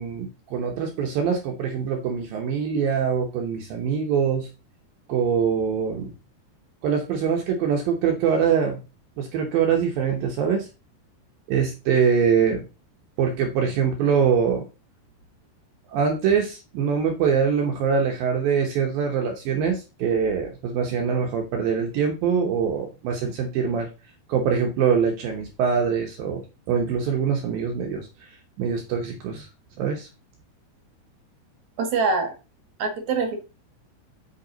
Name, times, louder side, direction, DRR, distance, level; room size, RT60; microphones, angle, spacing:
voice 1, 0.0-4.5 5.1-6.1 6.8-8.8 9.2-10.7 11.5-12.6 13.2-14.7 15.9-23.9 24.3-26.4 26.7-28.3 28.6-29.5 29.8-30.1, right 6 dB, 70° right, 2 dB, 2.5 m, -23 dB
voice 2, 31.8-32.3 32.8-33.4, right 4 dB, 55° right, 5 dB, 2.5 m, -24 dB
8.8 x 5.3 x 3.9 m, 0.29 s
omnidirectional pair, 4.7 m